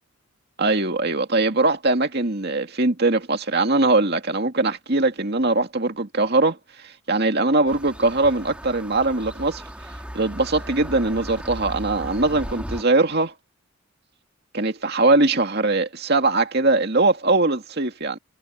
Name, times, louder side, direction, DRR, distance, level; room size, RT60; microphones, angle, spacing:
voice 1, 0.6-6.6 6.8-9.6 10.1-13.3 14.5-18.2, right 2 dB, 50° right, 2.3 m, -21 dB
sound 1, 7.7-12.8, equal, 5° right, 4.5 m, -36 dB
head